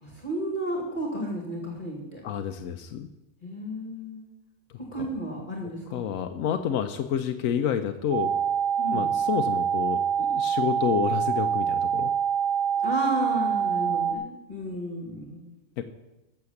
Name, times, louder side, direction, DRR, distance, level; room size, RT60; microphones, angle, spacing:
voice 1, 0.0-2.2 3.4-4.3 4.9-6.1 8.8-9.0 12.8-15.4, equal, 40° left, 0 dB, 2.2 m, -33 dB
voice 2, 2.2-3.1 5.0-5.1 5.9-8.4 8.9-12.1 15.8-15.9, left 8 dB, 90° left, 7 dB, 1.1 m, -29 dB
sound 1, 8.1-14.1, right 8 dB, 85° right, 1.7 m, -25 dB
14.5 x 6.8 x 7.1 m, 1.0 s
omnidirectional pair, 1.4 m